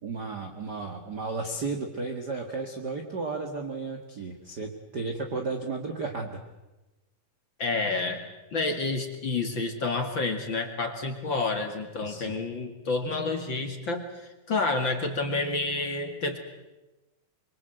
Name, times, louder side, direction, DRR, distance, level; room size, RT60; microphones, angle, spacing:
voice 1, 0.0-6.4 12.0-12.3, right 3 dB, 50° right, 4 dB, 1.1 m, -34 dB
voice 2, 7.6-8.2 8.5-16.4, left 3 dB, 40° left, 5 dB, 1.9 m, -29 dB
25.0 x 24.5 x 7.9 m, 1.1 s
omnidirectional pair, 4.7 m